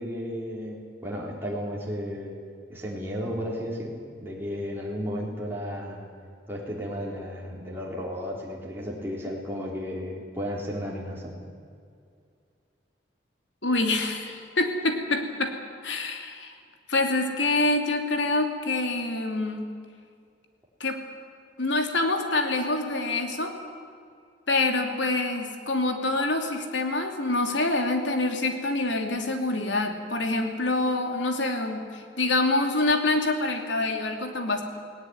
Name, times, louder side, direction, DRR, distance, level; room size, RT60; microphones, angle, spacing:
voice 1, 0.0-2.4 2.7-3.9 4.2-6.0 6.5-11.4, equal, 10° right, -4 dB, 3.8 m, -33 dB
voice 2, 13.6-15.5 15.8-16.5 16.9-19.6 20.8-21.0 21.6-23.5 24.5-34.6, left 2 dB, 85° left, 4 dB, 2.8 m, -26 dB
19.0 x 18.5 x 9.6 m, 2.3 s
head